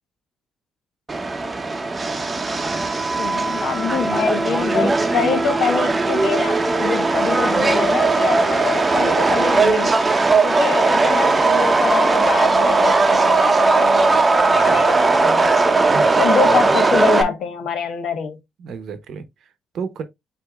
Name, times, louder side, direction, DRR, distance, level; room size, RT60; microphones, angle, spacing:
Subway metro underground, 1.1-17.2, right 3 dB, 25° right, 0.8 m, -18 dB
voice 1, 2.7-10.0 10.4-15.7 16.2-18.4, left 6 dB, 70° left, 0.9 m, -25 dB
voice 2, 14.5-14.8 15.8-16.7 18.6-20.0, right 5 dB, 70° right, 0.9 m, -33 dB
8.1 x 2.8 x 2.3 m
cardioid pair, 90°, 0 cm